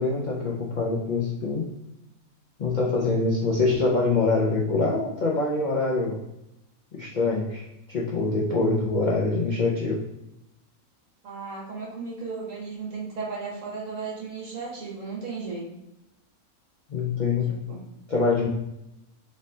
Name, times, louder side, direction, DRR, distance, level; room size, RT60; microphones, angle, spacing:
voice 1, 0.0-1.7 2.6-6.2 6.9-10.0 16.9-17.6 18.1-18.5, left 3 dB, 90° left, -3 dB, 0.4 m, -25 dB
voice 2, 11.2-15.7 17.5-17.8, right 4 dB, 60° right, -5 dB, 1.8 m, -35 dB
4.0 x 3.5 x 2.6 m, 0.88 s
omnidirectional pair, 1.6 m